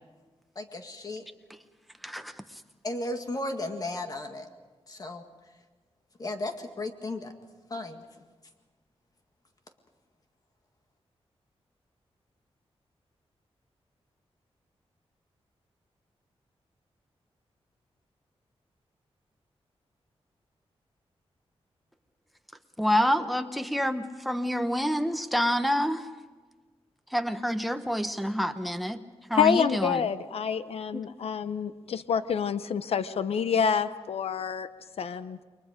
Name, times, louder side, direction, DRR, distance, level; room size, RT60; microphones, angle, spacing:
voice 1, 0.6-1.2 2.8-4.5 4.9-5.2 6.2-7.3 7.7-8.1, left 2 dB, 35° left, 5 dB, 1.9 m, -34 dB
voice 2, 22.8-26.1 27.1-29.0 29.3-30.0, equal, ahead, 9 dB, 1.0 m, -27 dB
voice 3, 29.3-34.7 35.0-35.4, left 7 dB, 75° left, 12 dB, 0.8 m, -27 dB
29.0 x 23.0 x 5.1 m, 1.4 s
wide cardioid pair, 150°, 10 cm